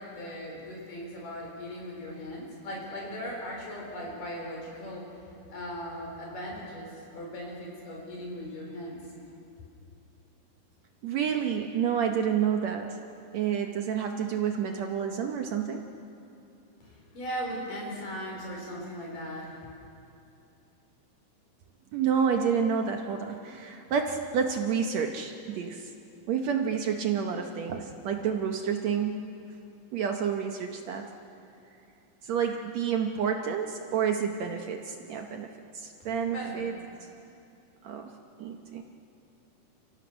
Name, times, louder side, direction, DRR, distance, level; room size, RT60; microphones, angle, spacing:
voice 1, 0.0-5.0 5.5-9.0 16.8-19.7 36.3-36.6, equal, 70° left, -1 dB, 6.0 m, -38 dB
voice 2, 11.0-13.0 13.3-15.8 21.9-25.9 26.3-29.3 29.9-31.1 32.2-36.7 37.0-37.1 37.8-38.1 38.4-38.8, right 7 dB, 65° right, 4 dB, 1.9 m, -29 dB
30.0 x 15.5 x 6.3 m, 2.7 s
omnidirectional pair, 3.9 m